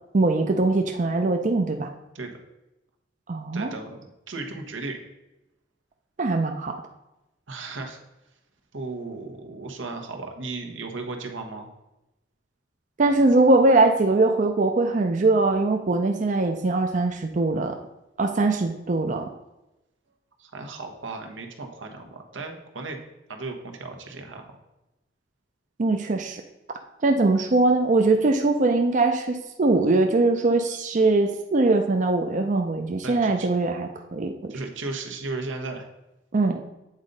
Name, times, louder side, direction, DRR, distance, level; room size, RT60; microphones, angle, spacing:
voice 1, 0.1-1.9 3.3-3.7 6.2-6.8 13.0-17.8 18.2-19.3 25.8-26.4 27.0-34.5 36.3-36.6, right 2 dB, 40° right, 5 dB, 0.5 m, -21 dB
voice 2, 3.5-5.0 7.5-8.0 8.7-11.7 20.4-23.0 23.3-24.5 33.0-33.5 34.5-35.9, right 3 dB, 90° right, 3 dB, 1.1 m, -35 dB
8.2 x 3.9 x 5.3 m, 0.96 s
head